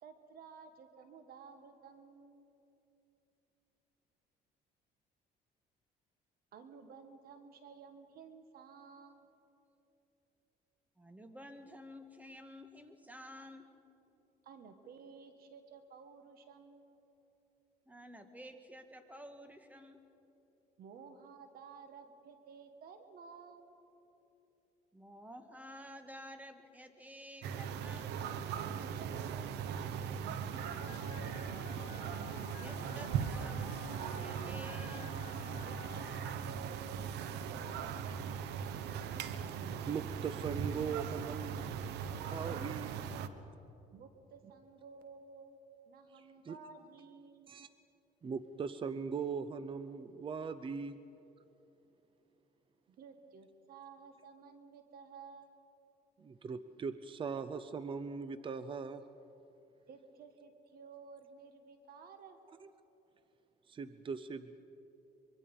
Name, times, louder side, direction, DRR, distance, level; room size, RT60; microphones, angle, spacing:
voice 1, 0.0-2.5 6.5-9.3 14.4-17.0 20.8-23.7 28.9-31.6 35.6-38.7 43.9-47.5 52.9-55.6 59.9-62.5, right 5 dB, 65° right, 8 dB, 1.5 m, -54 dB
voice 2, 11.0-13.6 17.9-20.0 24.9-28.1 32.0-35.2, equal, 10° right, 7 dB, 1.8 m, -52 dB
sound 1, 27.4-43.3, right 7 dB, 80° right, 1.0 m, -39 dB
Telephone, 30.5-36.3, left 12 dB, 65° left, 0.8 m, -53 dB
voice 3, 39.8-41.7 42.3-43.0 46.2-46.6 47.5-47.7 48.2-50.9 56.2-59.0 63.7-64.6, right 6 dB, 30° right, 12 dB, 0.7 m, -40 dB
24.0 x 23.5 x 5.4 m, 3.0 s
cardioid pair, 110°, 17 cm